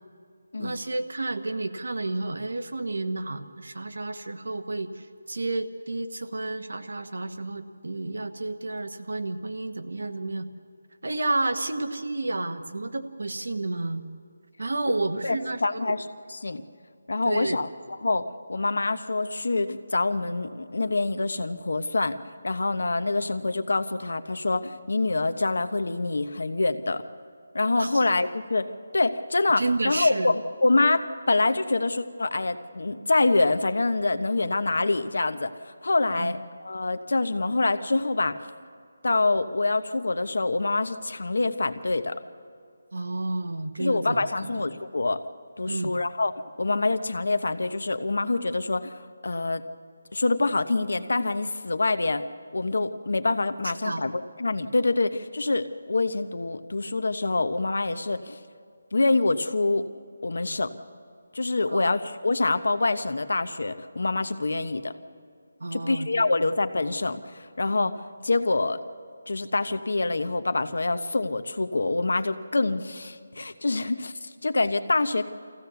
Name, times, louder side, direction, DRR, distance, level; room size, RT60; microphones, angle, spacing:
voice 1, 0.6-10.5 11.0-14.0 14.6-15.9 17.2-17.6 27.8-28.0 29.6-30.3 36.2-36.3 42.9-44.7 45.7-45.9 53.8-54.0 61.7-61.9 65.6-66.5, right 2 dB, 75° right, 6 dB, 1.4 m, -31 dB
voice 2, 15.2-16.6 17.1-17.7 18.0-22.2 22.4-27.0 27.5-35.5 35.8-38.4 39.0-42.1 43.8-45.2 45.6-46.3 46.6-49.6 50.1-52.2 52.5-58.4 58.9-59.8 60.2-60.7 61.3-64.9 65.7-68.0 68.2-68.8 69.3-75.3, left 3 dB, 65° left, 10 dB, 1.1 m, -26 dB
23.5 x 16.0 x 7.0 m, 2.3 s
figure-of-eight pair, 180°, 0 cm